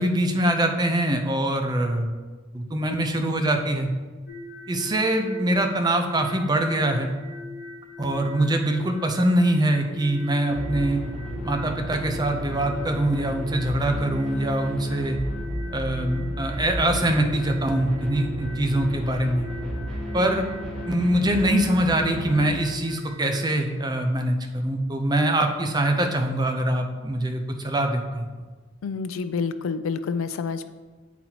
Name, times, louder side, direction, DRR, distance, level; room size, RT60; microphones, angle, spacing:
voice 1, 0.0-2.2 2.5-3.9 4.7-7.1 8.0-11.0 11.4-15.2 15.7-19.5 20.1-20.4 20.8-28.3, right 1 dB, 20° right, 4 dB, 0.5 m, -23 dB
sound 1, 4.3-23.4, left 3 dB, 55° left, 1.4 m, -40 dB
sound 2, 10.5-22.5, right 1 dB, 5° left, 1.6 m, -33 dB
voice 2, 28.8-30.7, left 5 dB, 80° left, 12 dB, 0.4 m, -28 dB
8.8 x 4.0 x 2.9 m, 1.3 s
head